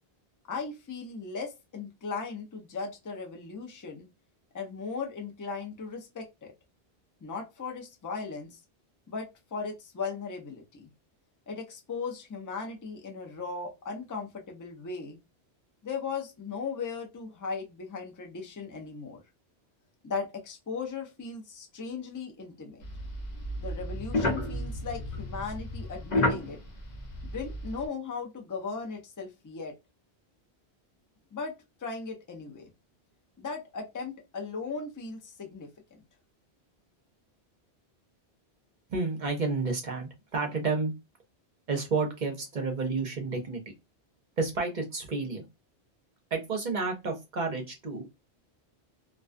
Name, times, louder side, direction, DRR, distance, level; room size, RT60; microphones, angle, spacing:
voice 1, 0.5-4.1 4.5-6.5 7.2-8.6 9.1-10.9 11.5-15.2 15.8-19.2 20.0-22.8 23.6-26.6 27.2-29.7 31.3-31.5 31.8-32.7 33.4-35.7, left 4 dB, 25° left, 2 dB, 0.4 m, -37 dB
sound 1, 22.8-27.8, left 1 dB, 45° left, 0.8 m, -32 dB
voice 2, 38.9-40.9 41.7-43.7 44.4-45.4 46.3-48.1, right 4 dB, 50° right, 3 dB, 0.7 m, -30 dB
2.3 x 2.2 x 2.4 m, 0.23 s
omnidirectional pair, 1.1 m